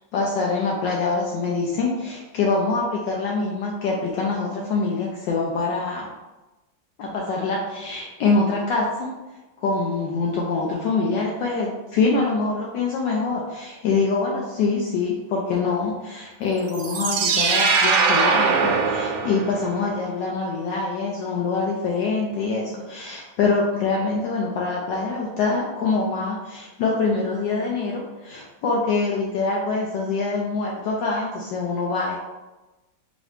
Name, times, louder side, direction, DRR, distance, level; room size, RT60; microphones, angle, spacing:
voice 1, 0.1-6.1 7.0-9.1 9.6-32.2, left 4 dB, 75° left, -2 dB, 1.2 m, -24 dB
sound 1, 16.7-19.8, right 5 dB, 80° right, 1.3 m, -21 dB
3.9 x 3.0 x 3.2 m, 1.1 s
omnidirectional pair, 2.1 m